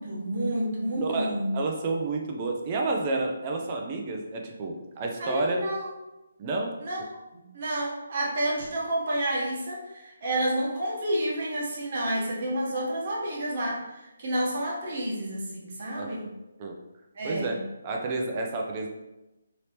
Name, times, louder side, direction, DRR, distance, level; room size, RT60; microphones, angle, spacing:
voice 1, 0.0-1.5 5.2-5.9 6.8-7.0 7.3-16.3 17.2-17.6, right 1 dB, 45° right, -3 dB, 1.0 m, -30 dB
voice 2, 1.0-5.6 6.4-6.8 15.9-16.3 16.6-16.8 17.2-17.6 17.8-18.9, right 3 dB, 25° right, 1 dB, 0.5 m, -30 dB
3.3 x 2.8 x 2.9 m, 0.98 s
hypercardioid pair, 165°, 0 cm